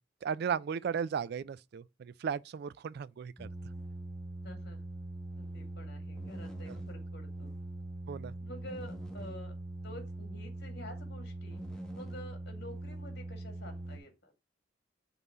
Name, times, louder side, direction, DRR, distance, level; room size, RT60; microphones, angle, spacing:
voice 1, 0.2-3.5 8.1-8.3, right 7 dB, 55° right, 0.3 m, -35 dB
sound 1, 3.4-14.0, right 1 dB, 5° left, 1.2 m, -42 dB
voice 2, 4.4-4.9 5.4-7.5 8.4-9.5 9.8-11.6 11.9-14.3, left 1 dB, 55° left, 2.1 m, -49 dB
5.5 x 4.0 x 5.9 m
head